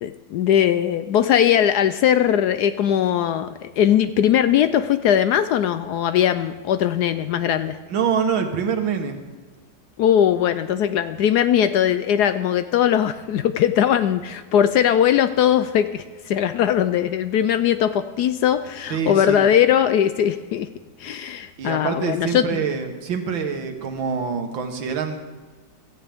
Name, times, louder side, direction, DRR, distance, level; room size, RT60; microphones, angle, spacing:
voice 1, 0.0-7.8 10.0-20.7 21.0-22.6, left 10 dB, 75° left, 11 dB, 1.0 m, -20 dB
voice 2, 7.9-9.2 18.9-19.5 21.6-25.2, right 6 dB, 85° right, 6 dB, 2.0 m, -25 dB
16.5 x 14.0 x 3.5 m, 1.4 s
omnidirectional pair, 2.1 m